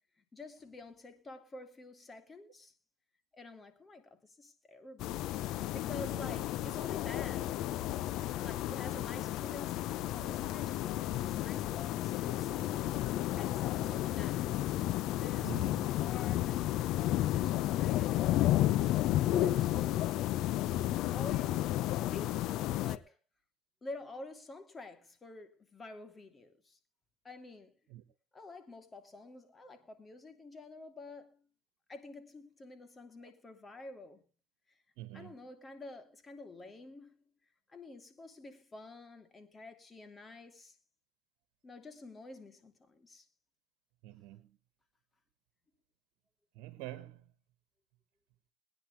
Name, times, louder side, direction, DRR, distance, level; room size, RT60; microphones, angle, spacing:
voice 1, 0.3-2.7 3.3-7.6 8.4-12.8 13.4-14.5 15.1-18.6 19.3-20.1 20.8-21.8 22.1-22.5 22.8-23.2 23.8-26.8 27.2-27.7 28.3-31.4 31.9-34.2 35.1-37.2 37.7-40.7 41.6-43.3, left 3 dB, 30° left, 3.0 m, -49 dB
sound 1, 5.0-23.0, left 14 dB, 70° left, 0.7 m, -32 dB
voice 2, 15.4-15.9 27.9-28.0 33.2-33.3 35.0-35.4 44.0-44.5 46.5-47.2, right 16 dB, 80° right, 1.3 m, -46 dB
21.5 x 10.0 x 3.3 m
supercardioid pair, 85°, 0 cm